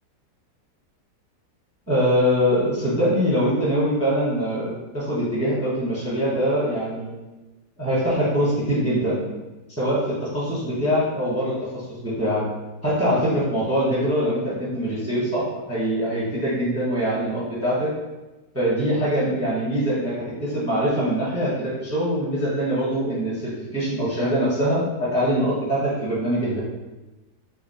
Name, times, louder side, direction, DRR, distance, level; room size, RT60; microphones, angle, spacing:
voice 1, 1.9-7.1 7.8-9.2 9.8-12.4 12.8-17.9 18.5-26.6, equal, 10° right, -8 dB, 0.9 m, -23 dB
3.2 x 2.8 x 4.0 m, 1.1 s
omnidirectional pair, 1.8 m